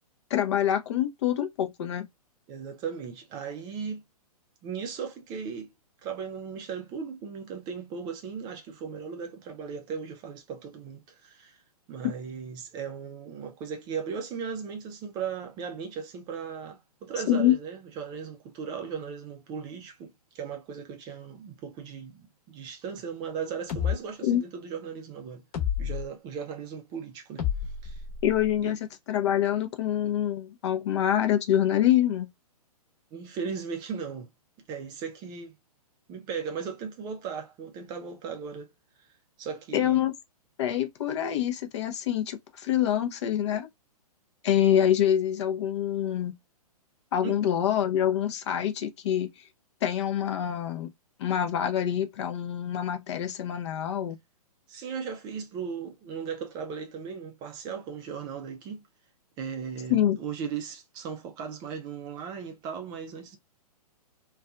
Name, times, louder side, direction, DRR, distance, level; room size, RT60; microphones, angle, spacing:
voice 1, 0.3-2.1 12.0-12.1 17.3-17.6 24.2-24.4 28.2-28.8 29.1-32.3 39.7-40.1 40.6-43.7 44.4-46.4 47.1-49.3 49.8-50.9 51.2-54.2 59.9-60.2, left 11 dB, 45° left, 0.6 m, -26 dB
voice 2, 2.5-4.0 4.6-5.7 6.0-11.6 11.9-25.4 25.8-28.0 28.6-28.7 33.1-34.3 34.7-35.5 36.1-38.7 39.4-40.0 47.2-47.4 54.7-58.8 59.4-63.4, right 6 dB, 20° right, 0.4 m, -37 dB
sound 1, 23.7-24.0 25.5-26.1 27.4-28.5, left 9 dB, 30° left, 1.0 m, -30 dB
2.5 x 2.3 x 2.3 m
figure-of-eight pair, 120°, 20 cm